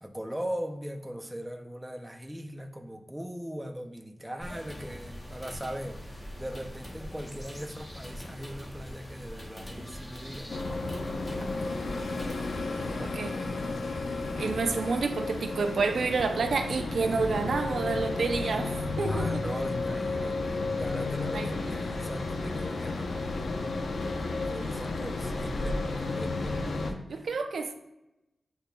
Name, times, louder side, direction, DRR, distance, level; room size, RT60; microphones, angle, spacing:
voice 1, 0.0-10.8 11.2-11.8 19.0-23.8 24.2-27.3, equal, 5° right, 3 dB, 0.5 m, -40 dB
sound 1, 4.4-12.5, equal, 25° left, 0.9 m, -43 dB
sound 2, 10.5-26.9, left 3 dB, 85° left, 0.5 m, -32 dB
voice 2, 13.0-13.4 14.4-19.2 21.3-21.5 27.1-27.7, right 4 dB, 80° right, 7 dB, 0.4 m, -29 dB
8.0 x 2.8 x 2.2 m, 0.93 s
wide cardioid pair, 160°, 0 cm